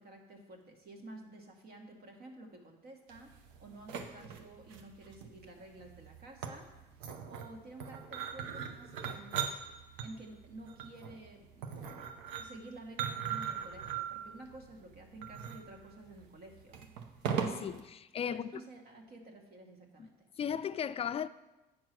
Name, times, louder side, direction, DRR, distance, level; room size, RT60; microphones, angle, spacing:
voice 1, 0.0-6.8 7.3-9.5 10.0-17.0 18.2-20.3, right 2 dB, 55° right, 1.6 m, -51 dB
sound 1, 3.1-17.8, right 7 dB, 90° right, 0.7 m, -40 dB
voice 2, 17.5-18.5 20.0-20.1 20.4-21.3, left 8 dB, 30° left, 0.4 m, -36 dB
8.7 x 4.6 x 6.0 m
supercardioid pair, 80°, 19 cm